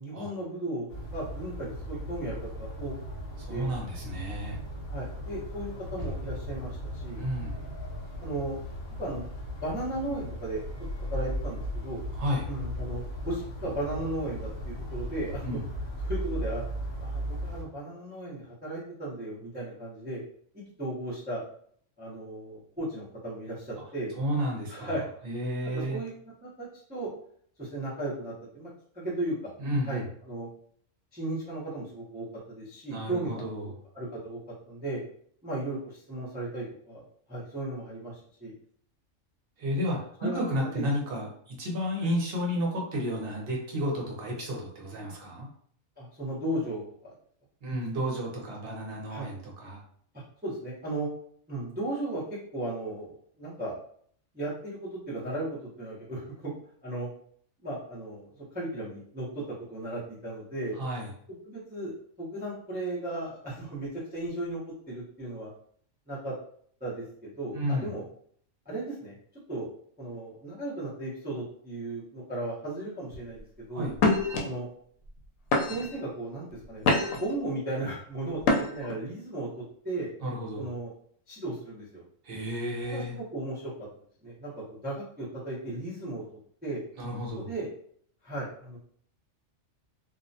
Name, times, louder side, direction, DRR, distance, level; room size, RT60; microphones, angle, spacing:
voice 1, 0.0-2.9 3.5-3.7 4.9-7.2 8.2-8.6 9.0-9.2 9.6-10.6 11.1-12.0 12.5-15.6 16.0-16.6 17.0-20.2 20.5-21.4 22.0-24.1 24.7-25.1 25.7-26.1 26.4-27.1 27.6-28.7 28.9-29.5 29.8-30.5 31.1-33.5 33.9-34.4 34.7-35.0 35.4-37.0 37.3-38.5 40.2-40.4 46.0-47.1 49.1-49.3 50.1-51.1 51.5-52.2 52.5-53.8 54.3-56.5 56.8-57.1 57.6-59.4 59.7-60.7 61.4-64.6 64.9-65.5 66.1-66.3 66.8-68.0 68.7-69.1 69.5-69.7 70.0-73.9 74.4-74.7 75.7-80.1 80.6-80.9 81.3-82.0 82.8-83.7 84.2-86.2 86.6-86.8 87.4-87.7 88.2-88.8, right 1 dB, 10° right, -8 dB, 0.5 m, -35 dB
sound 1, 0.9-17.6, equal, 60° left, 0.8 m, -37 dB
voice 2, 3.4-4.6 7.2-7.6 12.1-12.5 15.4-15.6 24.2-24.9 25.2-26.0 29.6-30.1 32.9-33.7 39.6-45.5 47.6-49.8 60.8-61.1 67.5-67.9 73.7-73.9 80.2-80.7 82.2-83.1 87.0-87.5, equal, 55° right, -1 dB, 0.8 m, -32 dB
sound 2, 73.1-73.4 74.0-74.4 75.1-75.2 75.5-76.0 76.5-77.3 78.4-78.9, left 2 dB, 85° left, 1.0 m, -25 dB
2.4 x 2.1 x 2.6 m, 0.62 s
omnidirectional pair, 1.3 m